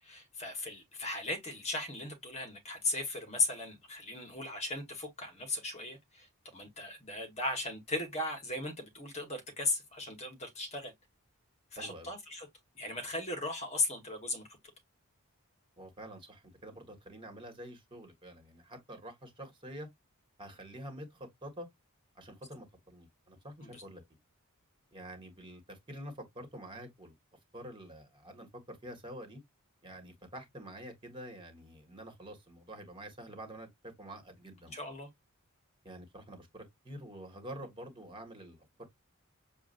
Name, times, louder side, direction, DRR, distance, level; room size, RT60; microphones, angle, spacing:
voice 1, 0.0-10.9 11.7-12.5 12.7-14.5 23.6-23.8 34.7-35.1, left 2 dB, 30° left, 1.4 m, -37 dB
voice 2, 11.7-12.1 15.8-19.9 20.4-21.7 22.1-24.0 24.9-27.2 27.5-29.4 29.8-34.8 35.8-38.9, right 1 dB, 20° right, 1.7 m, -47 dB
7.0 x 2.5 x 2.5 m
head